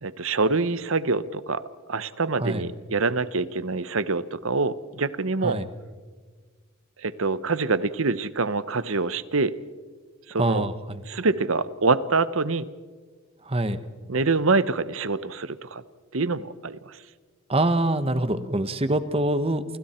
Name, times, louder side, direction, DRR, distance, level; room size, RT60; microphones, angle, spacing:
voice 1, 0.0-1.6 1.9-5.6 7.0-9.6 10.3-10.7 11.0-12.7 14.1-15.8 16.1-17.0, right 3 dB, 75° right, 15 dB, 1.0 m, -25 dB
voice 2, 10.4-11.0 13.4-13.8 17.5-19.8, right 1 dB, 30° right, 11 dB, 1.2 m, -25 dB
29.5 x 28.5 x 4.5 m, 1.5 s
head